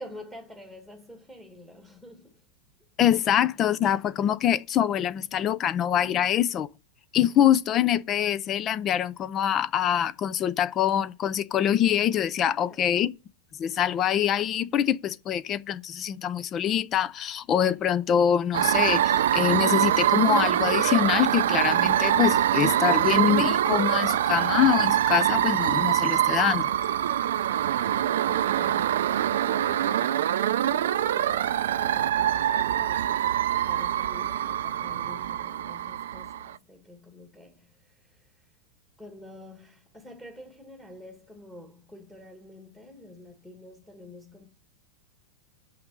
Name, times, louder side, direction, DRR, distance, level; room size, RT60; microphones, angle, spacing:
voice 1, 0.0-2.5 6.0-6.4 12.4-13.0 27.8-38.5 39.0-44.5, left 1 dB, 5° left, 1.6 m, -47 dB
voice 2, 3.0-6.7 7.1-13.1 13.6-26.7, left 10 dB, 30° left, 0.5 m, -24 dB
sound 1, 18.5-36.5, right 11 dB, 80° right, 0.5 m, -24 dB
7.3 x 5.7 x 5.3 m
supercardioid pair, 135°, 0 cm